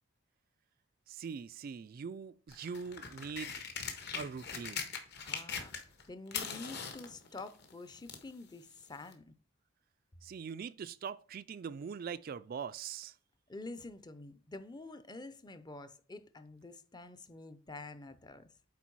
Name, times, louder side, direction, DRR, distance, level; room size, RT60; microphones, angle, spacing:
voice 1, 1.1-3.5 4.1-4.9 10.2-13.1, right 6 dB, 45° right, 0.3 m, -42 dB
sound 1, 2.5-6.0 6.3-8.3 9.1-9.2, left 6 dB, 55° left, 1.4 m, -41 dB
voice 2, 5.2-9.3 13.5-18.5, left 2 dB, 20° left, 0.6 m, -48 dB
8.3 x 4.5 x 4.6 m
head